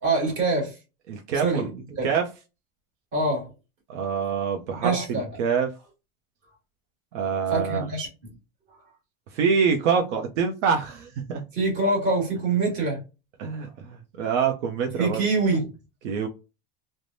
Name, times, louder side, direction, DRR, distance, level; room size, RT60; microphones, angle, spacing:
voice 1, 0.0-0.7 1.4-2.1 3.1-3.5 4.8-5.3 7.5-8.1 11.5-13.0 15.0-15.7, right 3 dB, 35° right, 1.5 m, -25 dB
voice 2, 1.1-1.7 2.0-2.3 3.9-5.7 7.1-7.9 9.3-11.4 13.4-15.2 16.0-16.3, right 6 dB, 75° right, 0.6 m, -25 dB
3.3 x 2.1 x 2.5 m
supercardioid pair, 175°, 36 cm